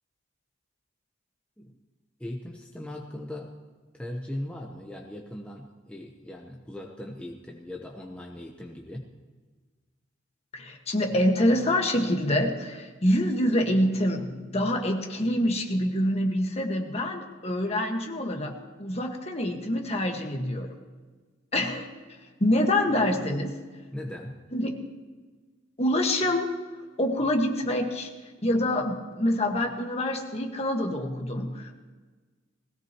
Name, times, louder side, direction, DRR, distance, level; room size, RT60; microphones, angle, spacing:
voice 1, 2.2-3.5 3.9-9.1 22.8-22.9 23.9-24.4, left 1 dB, 5° left, 0 dB, 0.9 m, -39 dB
voice 2, 10.5-20.7 21.5-23.6 24.5-24.8 25.8-26.5 27.0-28.1 28.4-31.7, left 1 dB, 30° left, 2 dB, 1.6 m, -26 dB
20.0 x 17.0 x 3.0 m, 1.4 s
head